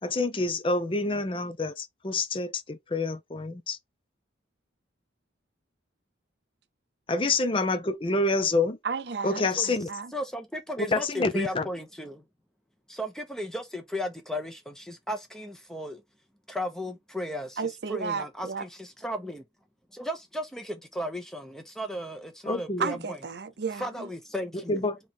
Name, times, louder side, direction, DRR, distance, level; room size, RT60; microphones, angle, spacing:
voice 1, 0.0-3.8 7.1-8.8 9.2-9.9 10.8-11.7 22.4-23.0 24.5-25.0, left 2 dB, 30° left, 0.6 m, -27 dB
voice 2, 8.8-10.1 17.6-18.6 22.8-24.1, right 5 dB, 60° right, 0.6 m, -33 dB
voice 3, 10.1-11.0 11.3-12.2 12.9-16.0 16.5-17.6 17.9-19.4 19.9-23.2 23.8-24.8, equal, 5° left, 0.9 m, -35 dB
3.5 x 3.1 x 4.3 m
head